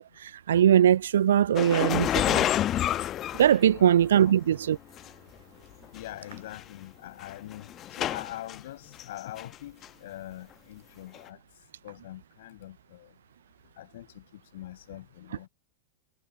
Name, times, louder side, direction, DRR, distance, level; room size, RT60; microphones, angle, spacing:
voice 1, 0.0-2.4 3.4-4.8, right 10 dB, 65° right, 0.4 m, -21 dB
sound 1, 1.5-4.1 5.0-5.1 6.0-6.1 6.3-6.6 7.2-8.6 9.0-9.5 9.8-9.9 11.1-11.2, left 12 dB, 30° left, 1.1 m, -28 dB
voice 2, 3.7-4.3 5.9-11.4 11.8-13.1 13.8-15.5, left 14 dB, 55° left, 5.9 m, -43 dB
figure-of-eight pair, 90°, 0 cm